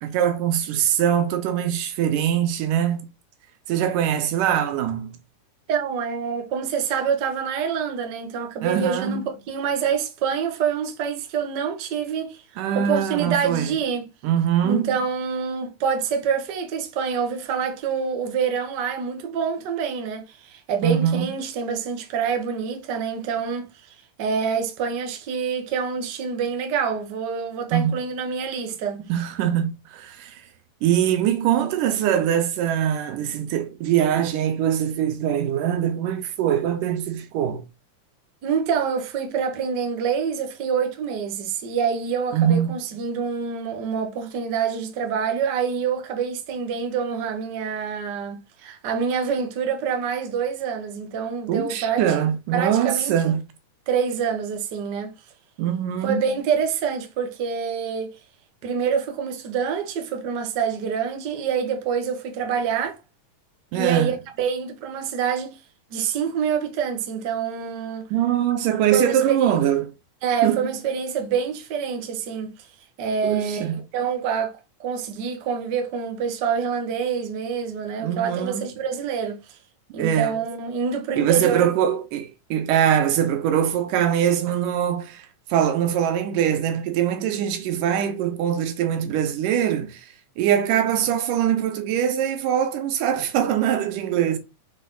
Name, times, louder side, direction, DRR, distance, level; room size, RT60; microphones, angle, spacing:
voice 1, 0.0-3.1 3.7-5.2 8.6-9.3 12.6-13.8 14.2-15.0 20.8-21.3 27.7-28.0 29.0-30.4 30.8-37.6 42.3-42.7 51.5-53.4 55.6-56.4 63.7-64.1 68.1-69.9 70.4-70.7 73.2-73.8 78.0-78.7 80.0-80.4 81.1-90.1 90.4-94.4, right 9 dB, 90° right, 2.5 m, -23 dB
voice 2, 5.7-12.4 12.7-14.1 14.6-23.7 24.2-29.0 38.4-52.0 52.5-53.1 53.9-55.1 56.0-58.1 58.6-63.0 63.7-65.6 65.9-68.1 68.9-69.5 70.2-72.5 73.0-79.6 79.9-81.7, right 6 dB, 60° right, 1.1 m, -26 dB
5.7 x 4.2 x 3.9 m
omnidirectional pair, 3.6 m